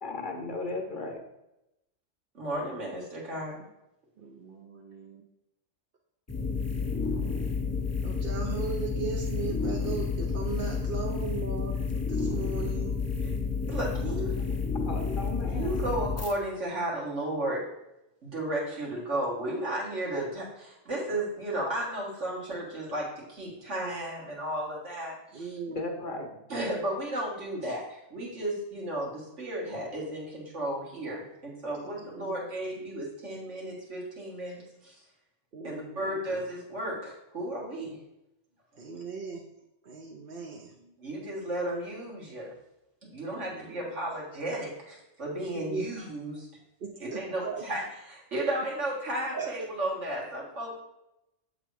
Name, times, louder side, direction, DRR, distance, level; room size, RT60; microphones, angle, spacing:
voice 1, 0.0-1.2 14.8-15.9 25.7-26.3, left 3 dB, 50° left, 3 dB, 0.8 m, -36 dB
voice 2, 2.3-3.6 13.7-14.4 15.4-17.6 18.2-25.6 26.5-34.9 35.6-38.0 41.0-42.5 43.0-46.5 47.0-50.8, right 1 dB, 75° right, -4 dB, 2.2 m, -34 dB
voice 3, 4.2-5.2 8.0-11.8 12.1-13.0 25.3-25.9 32.0-32.3 35.5-36.4 38.8-39.4 39.9-40.7 43.3-43.8 45.5-45.8 46.8-47.6 49.3-49.5, right 5 dB, 55° right, 0 dB, 0.8 m, -38 dB
sound 1, 6.3-16.3, left 4 dB, 15° left, 0.6 m, -30 dB
7.9 x 4.0 x 4.7 m, 0.89 s
omnidirectional pair, 1.3 m